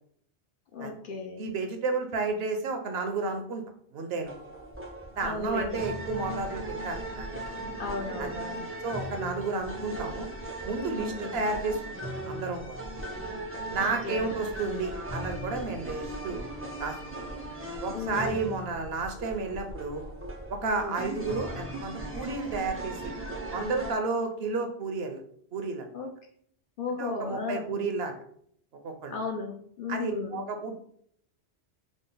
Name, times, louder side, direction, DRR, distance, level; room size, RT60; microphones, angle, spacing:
voice 1, 0.7-1.5 5.2-5.9 7.8-8.7 10.9-11.5 13.8-14.3 17.9-18.6 20.6-21.1 25.9-26.1 26.8-27.9 29.1-30.4, left 4 dB, 60° left, 3 dB, 0.6 m, -35 dB
voice 2, 1.4-3.6 3.9-4.3 5.2-7.3 8.2-8.4 8.8-10.3 10.6-11.8 12.2-12.8 13.7-16.4 16.8-17.0 17.8-20.0 20.5-23.1 23.5-25.2 25.5-25.9 27.0-28.1 28.8-29.2 29.9-30.8, right 3 dB, 65° right, 5 dB, 0.8 m, -32 dB
sound 1, 4.2-23.9, right 1 dB, 20° right, 0.3 m, -38 dB
3.7 x 2.0 x 3.8 m, 0.64 s
omnidirectional pair, 1.2 m